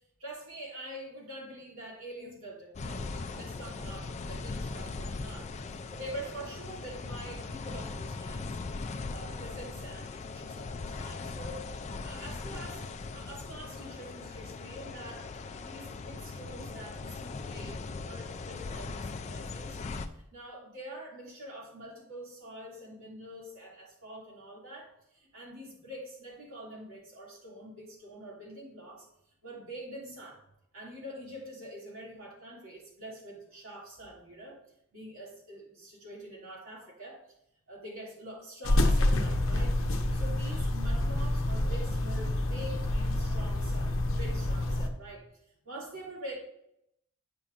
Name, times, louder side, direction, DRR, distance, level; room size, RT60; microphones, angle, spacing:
voice 1, 0.2-8.7 9.1-11.6 12.0-12.8 13.1-15.3 15.6-29.1 29.4-30.4 30.7-34.6 34.9-37.2 37.7-39.8 40.1-45.3 45.6-46.4, right 1 dB, 70° right, -3 dB, 2.4 m, -45 dB
sound 1, 2.7-20.1, left 3 dB, 30° left, 0.3 m, -39 dB
sound 2, 38.6-44.9, left 1 dB, 60° left, 0.7 m, -28 dB
8.3 x 5.7 x 2.5 m, 0.76 s
head